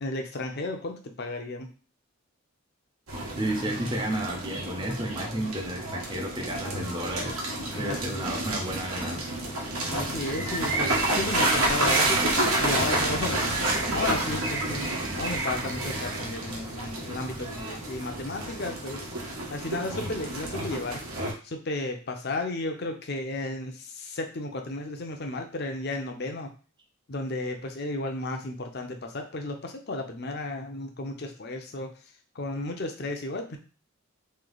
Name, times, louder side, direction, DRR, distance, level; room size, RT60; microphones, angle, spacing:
voice 1, 0.0-1.7 7.7-8.4 9.9-19.1 19.5-21.0 21.4-26.5 27.1-31.9 32.3-33.6, left 2 dB, 50° left, 4 dB, 0.6 m, -33 dB
sound 1, 3.1-21.3, right 1 dB, 85° right, 1.1 m, -30 dB
voice 2, 3.4-7.4 7.8-9.4, right 1 dB, 20° right, 2 dB, 0.5 m, -32 dB
Bird, 10.2-16.5, right 4 dB, 65° right, 0.9 m, -35 dB
3.2 x 2.8 x 3.9 m, 0.37 s
head